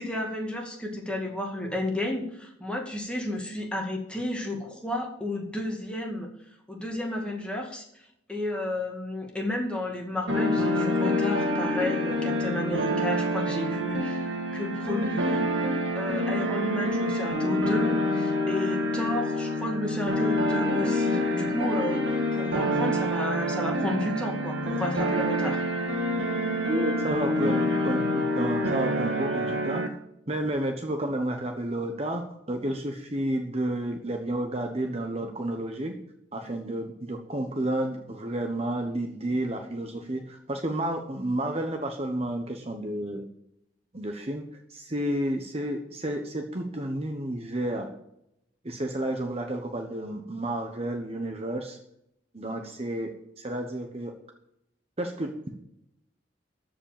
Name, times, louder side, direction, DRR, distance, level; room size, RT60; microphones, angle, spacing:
voice 1, 0.0-6.3 6.7-8.0 8.3-14.3 14.5-15.5 15.9-25.6, left 1 dB, 5° left, 0 dB, 2.1 m, -32 dB
sound 1, 10.3-29.9, left 1 dB, 70° right, 2.1 m, -27 dB
voice 2, 26.7-29.8 30.3-36.0 36.3-43.2 43.9-44.4 44.7-47.9 48.6-51.8 52.3-54.1 55.0-55.3, right 1 dB, 30° right, 4 dB, 1.1 m, -31 dB
14.0 x 5.2 x 7.5 m, 0.77 s
head